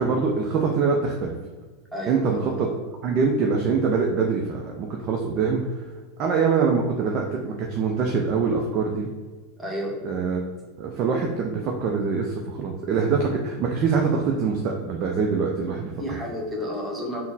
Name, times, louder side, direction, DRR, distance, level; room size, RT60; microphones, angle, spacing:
voice 1, 0.0-1.3 2.1-2.7 3.0-5.6 6.2-9.1 10.0-10.4 10.8-15.9, right 5 dB, 45° right, 1 dB, 0.5 m, -24 dB
voice 2, 1.9-2.6 9.6-10.0 16.0-17.2, equal, ahead, -4 dB, 1.1 m, -31 dB
3.9 x 2.1 x 3.9 m, 1.3 s
figure-of-eight pair, 85°, 0 cm